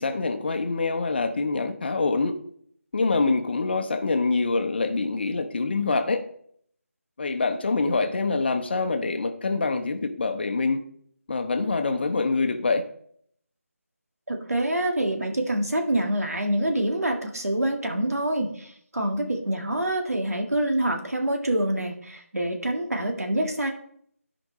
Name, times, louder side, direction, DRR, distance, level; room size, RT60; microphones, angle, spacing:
voice 1, 0.0-2.4 2.9-6.2 7.2-10.8 11.3-12.8, left 3 dB, 45° left, 0.9 m, -25 dB
voice 2, 14.3-23.7, right 1 dB, 80° right, 1.7 m, -26 dB
14.0 x 5.1 x 3.1 m
figure-of-eight pair, 165°, 8 cm